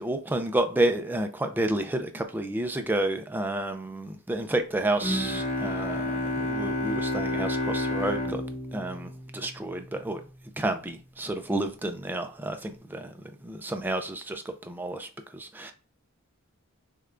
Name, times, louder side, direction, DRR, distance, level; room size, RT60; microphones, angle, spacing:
voice 1, 0.0-8.4 8.7-10.2 10.6-13.1 13.4-15.1 15.3-15.7, right 1 dB, 10° right, 0.3 m, -30 dB
Bowed string instrument, 5.0-10.1, left 1 dB, 35° left, 0.8 m, -30 dB
6.4 x 2.2 x 2.5 m
head